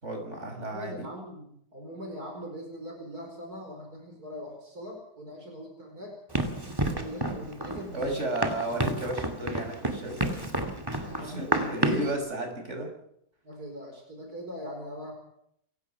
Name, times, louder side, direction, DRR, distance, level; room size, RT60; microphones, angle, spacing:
voice 1, 0.0-1.1 7.9-10.4 11.2-12.9, right 1 dB, 45° right, 3 dB, 6.5 m, -33 dB
voice 2, 0.7-6.2 6.4-8.0 11.0-11.9 13.4-15.1, equal, 70° right, 2 dB, 5.5 m, -41 dB
Run, 6.3-12.1, right 1 dB, 15° right, 2.4 m, -30 dB
29.0 x 16.5 x 5.9 m, 0.73 s
omnidirectional pair, 1.7 m